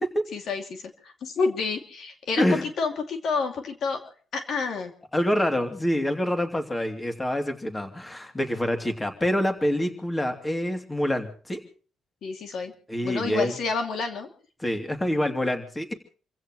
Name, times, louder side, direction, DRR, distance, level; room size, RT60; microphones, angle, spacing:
voice 1, 0.3-4.0 4.3-4.9 12.2-12.7 13.0-14.3, left 4 dB, 65° left, 5 dB, 2.5 m, -29 dB
voice 2, 5.1-11.6 12.9-13.6 14.6-15.9, equal, 15° left, 5 dB, 2.9 m, -26 dB
28.5 x 15.5 x 3.1 m, 0.40 s
cardioid pair, 90°, 0 cm